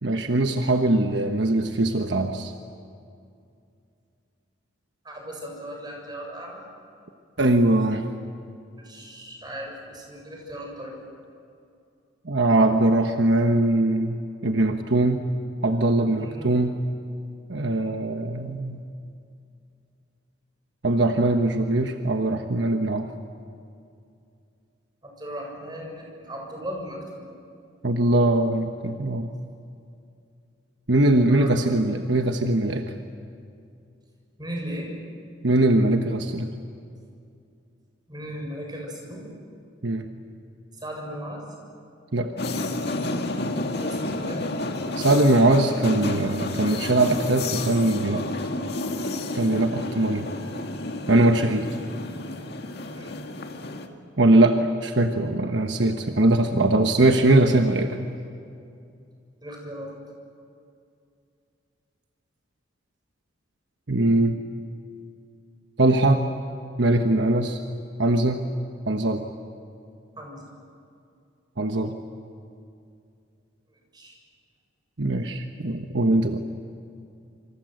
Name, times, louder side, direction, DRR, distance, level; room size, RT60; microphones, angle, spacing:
voice 1, 0.0-2.5 7.4-8.0 12.2-14.2 14.4-15.3 15.6-16.7 17.5-18.8 20.8-23.1 27.8-29.3 30.9-32.8 35.4-36.5 39.8-40.1 42.1-42.3 45.0-48.2 49.3-50.3 51.1-51.7 54.2-58.0 63.9-64.4 65.8-66.2 66.8-67.6 68.0-68.4 68.9-69.2 71.6-72.0 75.0-76.4, right 2 dB, 65° right, 5 dB, 1.2 m, -21 dB
voice 2, 5.0-6.6 8.8-11.0 16.2-16.3 17.7-17.9 25.0-27.2 31.3-31.6 34.4-34.9 38.1-39.3 40.7-41.4 43.8-44.5 52.9-53.1 59.4-59.9 70.2-70.4 73.9-74.2, equal, 20° right, 0 dB, 7.0 m, -37 dB
sound 1, 42.4-53.9, left 2 dB, 55° left, 2.1 m, -31 dB
27.5 x 26.0 x 7.9 m, 2.5 s
head